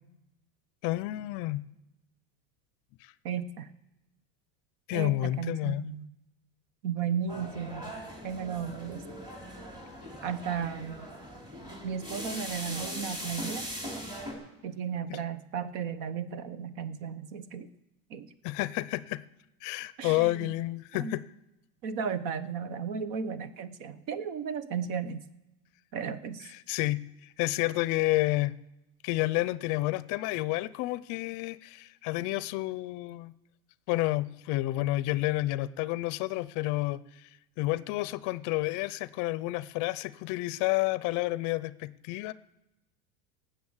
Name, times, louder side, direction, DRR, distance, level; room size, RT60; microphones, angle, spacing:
voice 1, 0.8-1.6 3.0-3.1 4.9-5.9 15.1-15.2 18.4-19.2 19.6-21.2 26.5-28.6 29.0-33.3 33.9-37.3 37.6-42.3, left 18 dB, 50° left, 18 dB, 0.5 m, -30 dB
voice 2, 3.2-3.7 4.9-6.1 6.8-7.8 8.2-9.0 10.2-11.0 11.8-13.7 14.6-17.7 18.1-18.3 20.0-20.5 20.9-21.1 21.8-25.2 25.9-26.5, right 7 dB, 60° right, 14 dB, 1.1 m, -34 dB
sound 1, 7.3-14.3, equal, 10° right, 3.1 m, -40 dB
18.5 x 7.7 x 7.2 m, 0.95 s
supercardioid pair, 145°, 39 cm